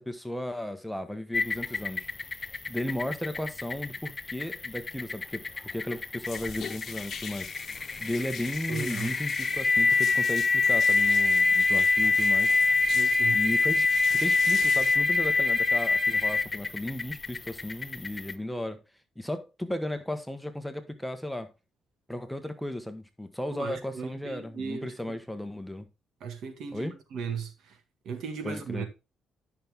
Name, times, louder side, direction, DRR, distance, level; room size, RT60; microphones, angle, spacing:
voice 1, 0.0-2.1 2.7-5.4 5.7-12.9 13.3-18.8 19.2-21.5 22.1-25.9 26.7-26.9 28.4-28.9, left 1 dB, 5° left, 1.2 m, -35 dB
sound 1, 1.3-18.3, left 4 dB, 25° left, 0.6 m, -26 dB
sound 2, 6.2-15.0, left 8 dB, 60° left, 1.0 m, -43 dB
voice 2, 8.7-9.1 12.9-13.4 23.5-25.2 26.2-27.8 28.0-28.9, right 6 dB, 75° right, 1.7 m, -37 dB
10.0 x 5.8 x 3.6 m
cardioid pair, 90°, 0 cm